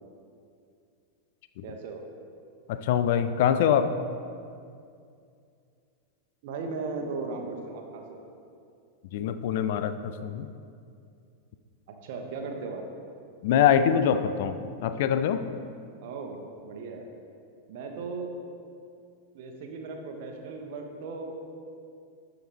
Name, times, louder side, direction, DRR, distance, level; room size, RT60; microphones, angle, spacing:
voice 1, 1.6-2.0 6.4-8.2 12.0-12.8 16.0-17.1 17.7-18.3 19.3-21.4, right 4 dB, 50° right, 3 dB, 1.0 m, -37 dB
voice 2, 2.7-4.0 9.1-10.5 13.4-15.5, left 8 dB, 50° left, 11 dB, 0.4 m, -24 dB
12.0 x 5.0 x 3.5 m, 2.4 s
figure-of-eight pair, 90°, 0 cm